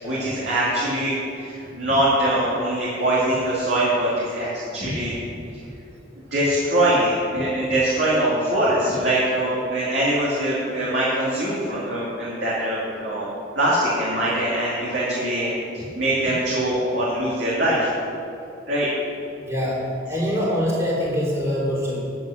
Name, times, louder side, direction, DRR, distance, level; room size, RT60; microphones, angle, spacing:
voice 1, 0.0-5.2 6.3-17.9 18.7-18.9, right 1 dB, 65° right, -8 dB, 2.4 m, -23 dB
voice 2, 19.4-19.8 20.1-22.0, equal, 15° right, -6 dB, 3.0 m, -24 dB
9.3 x 9.1 x 6.4 m, 2.7 s
head